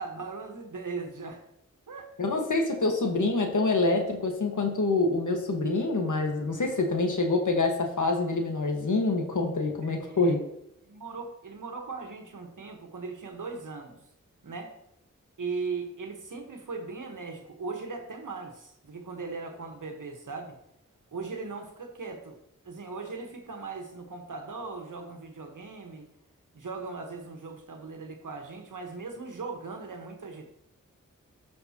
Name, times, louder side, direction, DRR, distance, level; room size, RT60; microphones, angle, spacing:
voice 1, 0.0-1.4 1.9-2.1 9.8-10.4 10.8-14.0 14.4-14.7 15.4-20.5 21.1-22.4 22.6-26.1 26.5-30.5, right 4 dB, 70° right, 4 dB, 1.4 m, -38 dB
voice 2, 2.2-10.4, left 3 dB, 65° left, 3 dB, 1.7 m, -26 dB
13.5 x 5.4 x 3.0 m, 0.78 s
cardioid pair, 40°, 32 cm